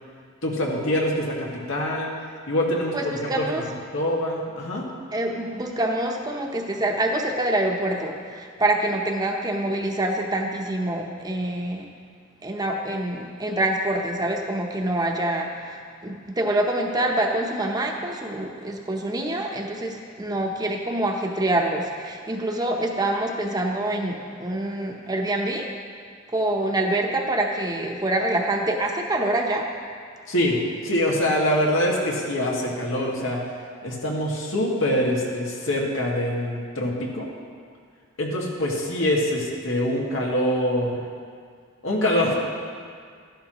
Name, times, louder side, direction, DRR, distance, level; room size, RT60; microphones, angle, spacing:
voice 1, 0.4-2.1 2.5-3.3 3.9-4.9 30.3-30.6 30.8-33.4 33.8-37.3 38.2-41.0 41.8-42.3, left 1 dB, 80° left, -3 dB, 2.0 m, -24 dB
voice 2, 2.9-3.6 5.1-11.9 12.4-25.7 26.3-29.7, right 1 dB, 20° right, 1 dB, 0.9 m, -26 dB
13.5 x 11.0 x 3.0 m, 2.1 s
head